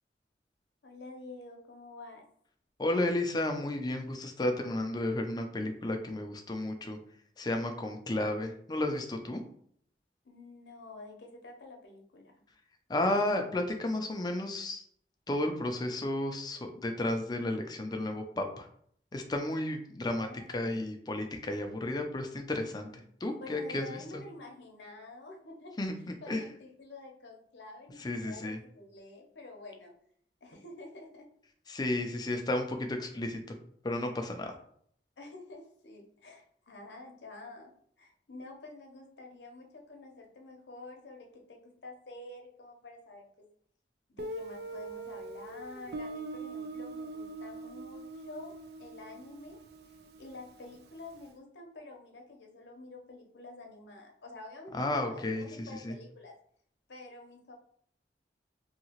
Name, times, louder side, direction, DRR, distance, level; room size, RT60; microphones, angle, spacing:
voice 1, 0.8-2.3 10.2-12.4 20.0-20.8 23.4-25.8 26.2-29.9 30.4-31.3 35.2-43.5 44.1-49.6 50.2-56.4 56.9-57.6, left 2 dB, 85° left, 2 dB, 0.7 m, -49 dB
voice 2, 2.8-7.0 7.4-9.4 12.9-14.8 15.3-18.7 19.1-24.2 25.8-26.4 28.0-28.6 31.7-33.6 33.8-34.5 54.7-55.9, left 1 dB, 25° left, 5 dB, 0.4 m, -33 dB
Guitar, 44.2-50.8, right 2 dB, 60° right, 0.3 m, -42 dB
2.8 x 2.8 x 2.9 m, 0.64 s
head